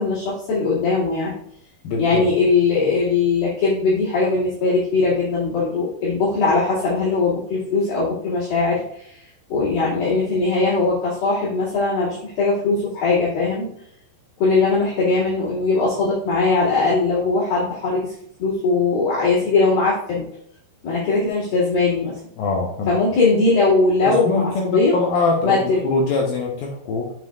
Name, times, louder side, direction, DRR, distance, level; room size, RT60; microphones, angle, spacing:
voice 1, 0.0-1.3 2.0-13.7 14.4-18.1 18.4-20.3 20.8-22.2 22.9-24.9 25.4-25.8, left 3 dB, 55° left, -10 dB, 3.8 m, -20 dB
voice 2, 1.8-2.3 22.4-22.9 24.1-27.1, left 3 dB, 75° left, 0 dB, 2.1 m, -23 dB
7.7 x 7.4 x 2.4 m, 0.71 s
omnidirectional pair, 5.4 m